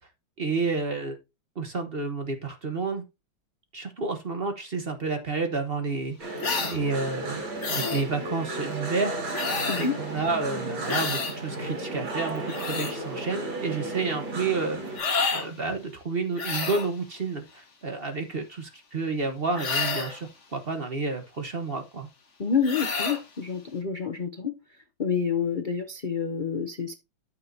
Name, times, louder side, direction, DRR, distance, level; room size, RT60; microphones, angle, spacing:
voice 1, 0.4-1.2 1.5-3.0 3.7-7.4 7.7-9.2 9.7-14.8 15.3-22.1, right 4 dB, 35° right, 1.1 m, -30 dB
sound 1, 6.2-15.0, right 2 dB, 85° right, 3.3 m, -34 dB
sound 2, 6.4-6.8 7.6-8.1 9.3-9.9 10.9-11.4 12.3-12.9 14.9-15.5 16.4-16.9 19.6-20.2 22.6-23.2, left 4 dB, 40° left, 1.7 m, -29 dB
voice 2, 22.4-24.5 25.0-26.9, left 6 dB, 65° left, 0.4 m, -28 dB
13.0 x 5.9 x 2.7 m
omnidirectional pair, 2.1 m